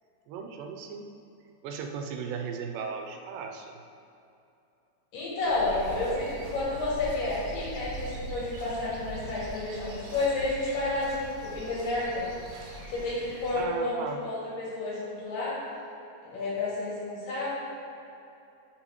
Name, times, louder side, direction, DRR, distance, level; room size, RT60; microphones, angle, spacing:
voice 1, 0.3-1.1 1.6-3.7 13.5-14.2, right 6 dB, 90° right, 3 dB, 2.4 m, -36 dB
voice 2, 5.1-12.2 12.9-15.6 16.3-17.5, left 2 dB, 85° left, -7 dB, 3.9 m, -30 dB
sound 1, 5.4-13.6, right 2 dB, 70° right, 2.8 m, -42 dB
13.0 x 5.9 x 3.1 m, 2.7 s
omnidirectional pair, 3.8 m